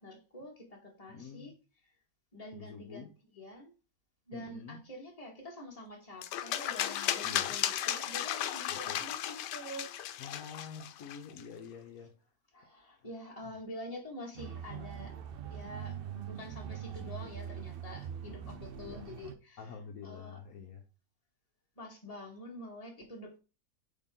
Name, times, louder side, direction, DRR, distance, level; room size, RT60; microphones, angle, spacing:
voice 1, 0.0-1.5 1.8-1.9 2.3-3.7 4.3-9.9 12.5-15.1 15.5-19.8 20.0-20.4 21.8-23.4, left 1 dB, 20° left, 1.8 m, -47 dB
voice 2, 1.1-1.5 2.5-3.1 4.3-4.8 7.2-7.6 8.7-9.0 10.2-12.1 18.3-19.0 19.6-20.8, left 6 dB, 60° left, 1.3 m, -47 dB
sound 1, 6.2-11.4, left 11 dB, 90° left, 1.2 m, -35 dB
sound 2, 14.3-19.3, right 9 dB, 70° right, 0.5 m, -42 dB
8.4 x 3.7 x 3.8 m
omnidirectional pair, 1.8 m